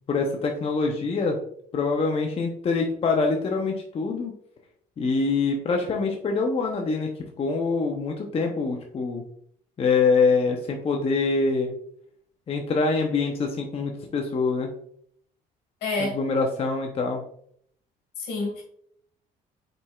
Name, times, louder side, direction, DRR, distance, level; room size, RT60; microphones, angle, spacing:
voice 1, 0.1-1.4 1.7-4.3 5.0-7.1 7.4-9.2 9.8-11.7 12.5-14.7 16.0-17.2, left 4 dB, 35° left, 2 dB, 0.7 m, -24 dB
voice 2, 15.8-16.1 18.2-18.6, left 3 dB, 75° left, 2 dB, 1.9 m, -28 dB
5.2 x 4.3 x 2.4 m, 0.65 s
cardioid pair, 110°, 17 cm